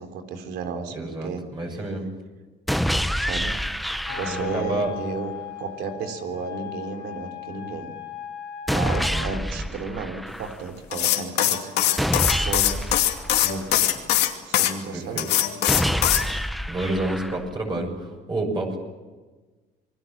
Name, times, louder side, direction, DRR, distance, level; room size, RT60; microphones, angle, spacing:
voice 1, 0.0-1.4 1.7-1.8 3.2-3.6 4.1-7.9 8.7-11.7 12.3-12.9 13.4-14.1 14.4-15.4, right 5 dB, 80° right, 6 dB, 3.7 m, -33 dB
voice 2, 0.9-2.1 4.3-4.9 9.1-9.7 14.9-15.3 15.7-16.3 16.7-18.8, right 2 dB, 25° right, 0 dB, 6.8 m, -30 dB
sound 1, 2.7-4.7 8.7-10.7 12.0-14.0 15.7-17.7, equal, ahead, 0.8 m, -27 dB
Wind instrument woodwind instrument, 4.0-9.4, left 11 dB, 65° left, 3.1 m, -37 dB
sound 2, 10.9-14.7 15.2-16.3, left 12 dB, 85° left, 2.6 m, -21 dB
28.0 x 21.0 x 7.4 m, 1.3 s
cardioid pair, 110°, 17 cm